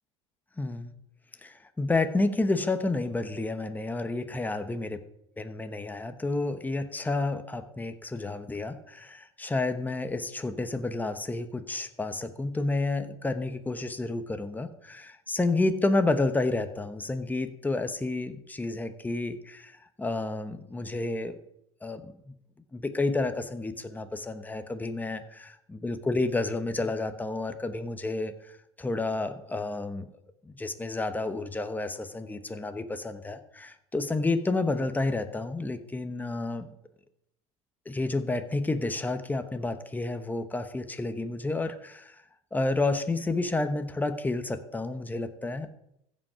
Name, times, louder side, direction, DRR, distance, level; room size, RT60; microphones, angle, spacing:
voice 1, 0.6-0.9 1.4-4.9 5.4-21.4 21.8-22.3 22.7-30.1 30.4-36.7 37.8-42.2 42.5-45.7, left 2 dB, 10° left, 9 dB, 1.1 m, -30 dB
15.5 x 5.5 x 5.0 m, 0.78 s
hypercardioid pair, 90°, 16 cm